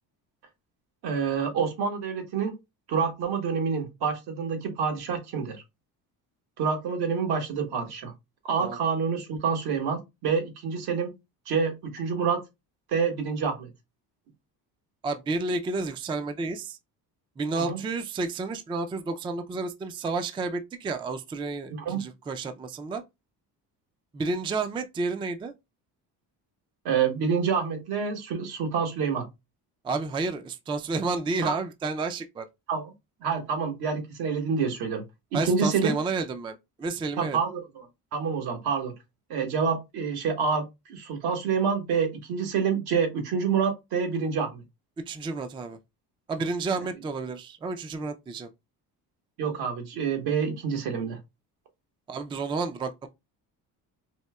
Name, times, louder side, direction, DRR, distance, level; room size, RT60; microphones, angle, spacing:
voice 1, 1.0-2.6 2.9-5.6 6.6-8.1 8.4-11.1 11.5-12.4 12.9-13.7 17.6-17.8 21.7-22.0 26.8-29.2 31.4-31.6 32.7-32.9 33.2-35.0 35.3-35.9 37.2-37.8 38.1-38.9 39.3-40.6 40.9-44.6 49.4-51.2, right 6 dB, 80° right, 1.3 m, -27 dB
voice 2, 15.0-16.8 17.4-23.0 24.1-25.5 29.8-32.5 35.3-37.4 45.1-45.8 46.3-48.5 52.1-53.1, right 3 dB, 15° right, 0.3 m, -31 dB
4.2 x 2.7 x 2.2 m
cardioid pair, 115°, 38 cm